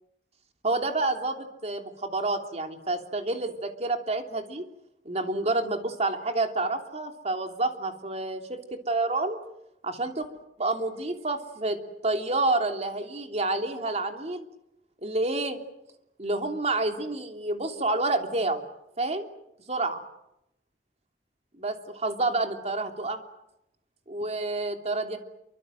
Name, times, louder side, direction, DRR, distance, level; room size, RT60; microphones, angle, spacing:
voice 1, 0.6-4.6 5.0-9.4 9.8-10.3 10.6-14.5 15.0-15.6 16.2-18.6 19.0-19.3 19.7-20.0 21.6-23.2 24.1-25.2, right 2 dB, 40° right, 5 dB, 3.1 m, -29 dB
28.0 x 25.0 x 7.9 m, 0.82 s
head